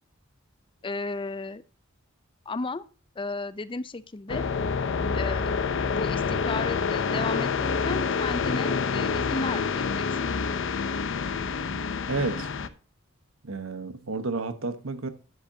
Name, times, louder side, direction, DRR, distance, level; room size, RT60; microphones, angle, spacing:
voice 1, 0.8-1.6 2.5-2.8 3.2-4.5 5.1-5.5 5.9-10.3, left 3 dB, 25° left, 0.5 m, -34 dB
sound 1, 4.3-12.7, left 5 dB, 65° left, 0.7 m, -27 dB
voice 2, 12.1-12.5 13.4-15.1, right 3 dB, 75° right, 1.1 m, -31 dB
11.0 x 7.5 x 2.7 m
head